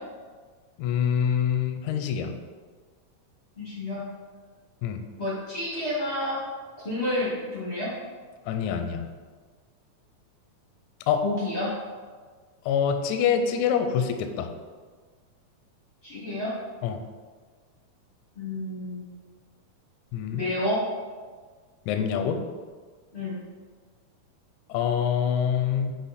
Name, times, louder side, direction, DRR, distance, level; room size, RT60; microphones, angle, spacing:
voice 1, 0.8-2.3 4.8-5.0 8.5-9.1 11.1-11.2 12.7-14.5 16.8-17.0 20.1-20.4 21.9-22.4 24.7-25.9, left 8 dB, 80° left, 6 dB, 1.8 m, -25 dB
voice 2, 3.6-4.0 5.2-6.4 6.8-7.9 11.2-11.7 16.0-16.5 18.3-19.0 20.3-20.8 23.1-23.3, left 1 dB, 40° left, -7 dB, 0.9 m, -29 dB
7.2 x 4.1 x 4.1 m, 1.5 s
omnidirectional pair, 3.7 m